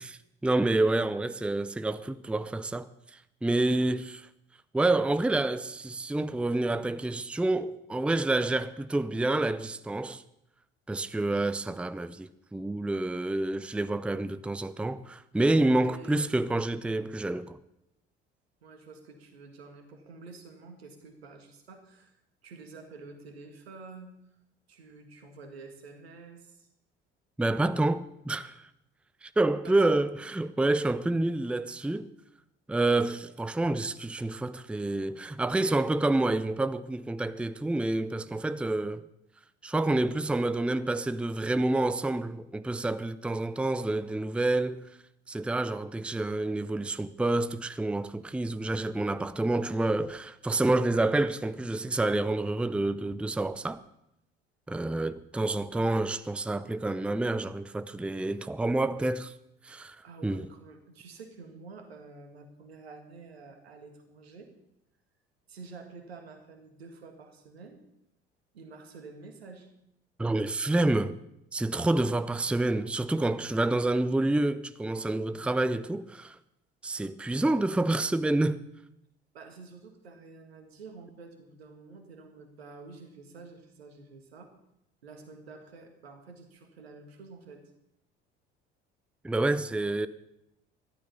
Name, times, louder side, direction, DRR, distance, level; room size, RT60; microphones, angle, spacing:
voice 1, 0.0-4.3 4.7-10.2 10.9-17.6 27.4-28.6 29.2-32.1 32.7-39.0 39.6-44.9 45.3-53.8 54.7-59.3 59.6-60.0 60.2-60.5 70.2-71.2 71.5-76.4 76.8-78.6 89.2-90.1, right 2 dB, 5° right, 0.6 m, -28 dB
voice 2, 15.9-16.3 18.6-24.2 24.7-26.7 29.6-30.0 60.0-64.5 65.5-67.8 68.5-69.7 79.3-84.5 85.0-87.6, right 4 dB, 85° right, 2.0 m, -49 dB
13.0 x 12.0 x 5.4 m
hypercardioid pair, 60°, 30 cm